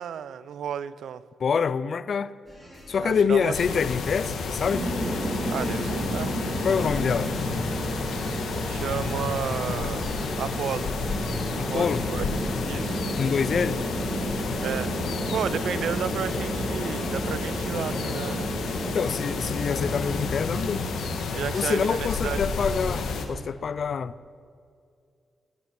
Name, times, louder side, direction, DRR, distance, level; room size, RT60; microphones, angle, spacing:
voice 1, 0.0-1.2 3.0-3.8 5.5-6.4 8.7-10.1 10.4-10.9 11.7-12.2 12.7-13.0 14.6-14.9 15.3-18.5 21.3-22.8, right 8 dB, 70° right, 0.4 m, -32 dB
voice 2, 1.4-2.3 2.9-4.9 6.6-7.3 11.6-12.1 13.2-13.8 14.5-14.6 14.9-15.2 18.8-20.8 21.5-24.1, left 6 dB, 45° left, 0.4 m, -26 dB
sound 1, 2.5-18.8, equal, 20° right, 4.1 m, -44 dB
sound 2, 3.5-23.3, left 4 dB, 85° left, 1.4 m, -31 dB
sound 3, 4.7-21.2, right 1 dB, 35° right, 2.4 m, -33 dB
16.0 x 10.5 x 5.9 m
wide cardioid pair, 165°, 0 cm